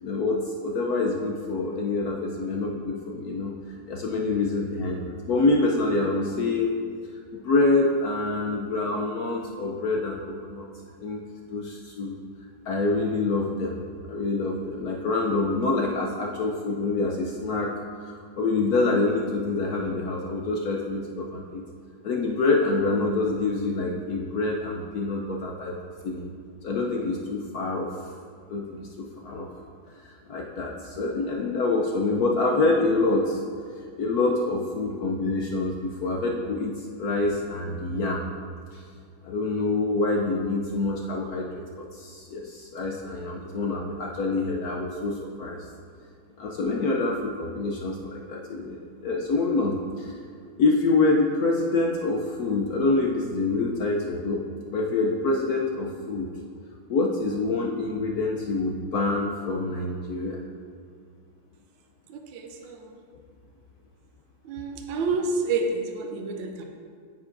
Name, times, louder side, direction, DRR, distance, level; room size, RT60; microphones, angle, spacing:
voice 1, 0.0-3.5 3.9-6.7 7.3-10.7 11.0-11.2 11.5-12.2 12.7-13.8 14.1-17.7 18.1-21.6 22.0-25.8 26.0-26.2 26.6-28.1 28.5-29.5 29.9-33.4 34.0-38.2 38.7-38.8 39.2-45.7 46.4-50.2 50.6-54.4 54.7-56.3 56.9-60.4, left 3 dB, 75° left, 0 dB, 0.8 m, -26 dB
voice 2, 62.3-62.8 64.5-66.6, right 3 dB, 75° right, 3 dB, 1.4 m, -28 dB
9.3 x 8.7 x 2.6 m, 2.1 s
omnidirectional pair, 2.3 m